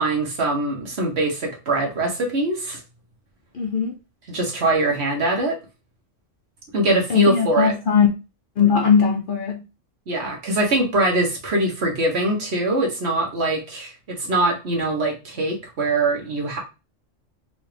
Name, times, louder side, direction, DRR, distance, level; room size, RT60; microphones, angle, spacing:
voice 1, 0.0-2.8 4.3-5.6 6.7-7.7 10.1-16.6, right 2 dB, 60° right, 1.4 m, -22 dB
voice 2, 3.5-3.9 7.1-8.1 8.6-9.6, left 6 dB, 55° left, 0.6 m, -19 dB
3.9 x 2.5 x 3.3 m
omnidirectional pair, 1.3 m